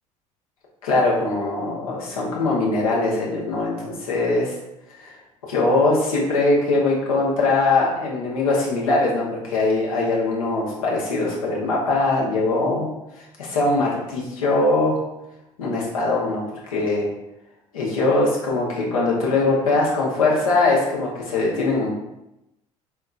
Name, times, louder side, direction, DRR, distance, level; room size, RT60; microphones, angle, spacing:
voice 1, 0.8-4.6 5.0-5.2 5.4-12.9 13.1-15.0 15.6-17.1 17.7-21.9, left 2 dB, 70° left, -3 dB, 0.9 m, -21 dB
4.2 x 3.4 x 2.3 m, 0.89 s
figure-of-eight pair, 60°, 18 cm